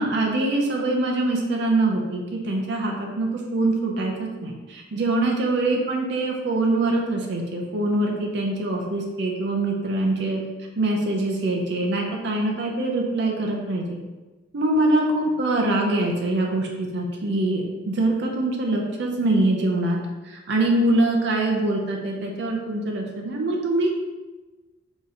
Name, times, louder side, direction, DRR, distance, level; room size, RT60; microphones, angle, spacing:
voice 1, 0.0-10.4 10.8-13.8 14.5-20.0 20.2-23.9, right 2 dB, 60° right, 0 dB, 0.6 m, -24 dB
3.7 x 3.0 x 4.1 m, 1.2 s
head